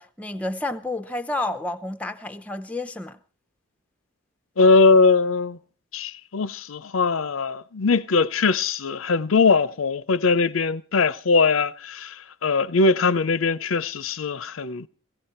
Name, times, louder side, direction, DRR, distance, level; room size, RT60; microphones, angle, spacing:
voice 1, 0.0-3.2, left 2 dB, 5° left, 0.7 m, -30 dB
voice 2, 4.6-5.6 5.9-14.9, left 4 dB, 85° left, 0.6 m, -21 dB
17.5 x 16.0 x 4.3 m
head